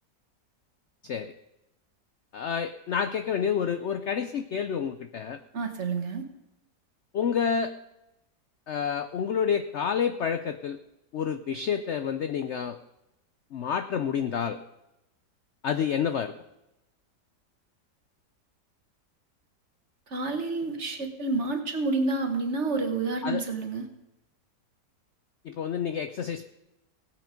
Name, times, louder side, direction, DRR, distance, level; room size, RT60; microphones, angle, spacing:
voice 1, 2.3-5.4 7.1-7.7 8.7-10.8 11.1-12.8 13.5-14.6 15.6-16.3 23.2-23.4 25.4-26.5, left 7 dB, 70° left, 10 dB, 0.6 m, -29 dB
voice 2, 5.5-6.3 20.1-23.9, right 3 dB, 45° right, 5 dB, 1.6 m, -29 dB
17.0 x 8.7 x 5.1 m, 0.92 s
omnidirectional pair, 1.9 m